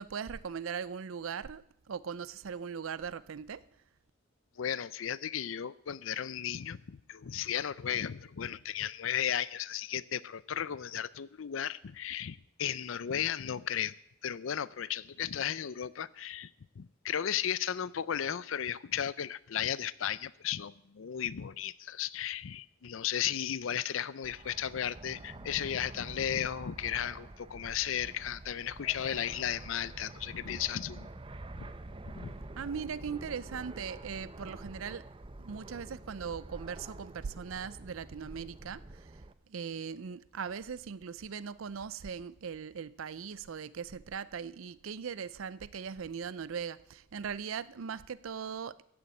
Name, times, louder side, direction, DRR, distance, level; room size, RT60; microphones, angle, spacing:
voice 1, 0.0-1.6 1.9-3.6 32.6-35.1 35.4-39.2 39.5-48.8, right 6 dB, 85° right, 0.5 m, -39 dB
voice 2, 4.6-13.9 14.2-16.5 16.8-31.1 31.6-31.7 32.0-32.3, left 9 dB, 75° left, 0.5 m, -35 dB
Fixed-wing aircraft airplane, 24.2-39.3, right 2 dB, 25° right, 0.7 m, -47 dB
15.0 x 7.1 x 8.3 m
head